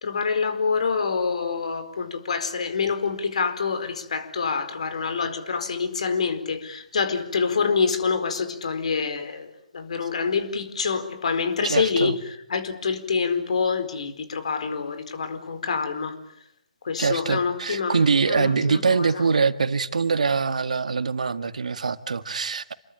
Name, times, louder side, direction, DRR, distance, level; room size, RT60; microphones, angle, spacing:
voice 1, 0.0-12.2 12.5-16.1 16.8-19.2, left 5 dB, 60° left, 4.6 m, -26 dB
voice 2, 11.6-12.2 17.0-22.7, right 5 dB, 65° right, 1.9 m, -23 dB
29.0 x 22.5 x 9.0 m
figure-of-eight pair, 135°, 4 cm